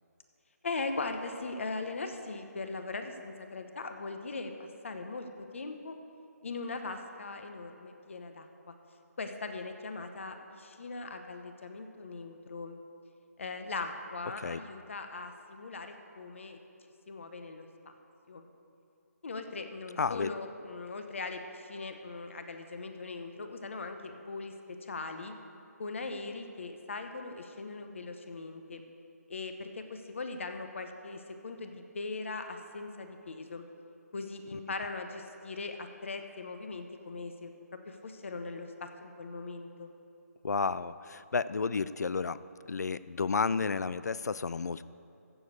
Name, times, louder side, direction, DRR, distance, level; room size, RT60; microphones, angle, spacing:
voice 1, 0.6-5.3 5.5-6.0 6.4-8.7 9.2-12.8 13.4-16.6 17.1-17.7 18.3-18.5 19.2-24.5 24.8-25.3 25.8-28.8 29.3-33.6 34.1-37.5 37.9-39.9, left 3 dB, 50° left, 6 dB, 1.0 m, -40 dB
voice 2, 20.0-20.3 40.4-42.4 42.7-44.8, left 4 dB, 80° left, 16 dB, 0.4 m, -31 dB
14.5 x 5.3 x 8.1 m, 2.7 s
hypercardioid pair, 170°, 9 cm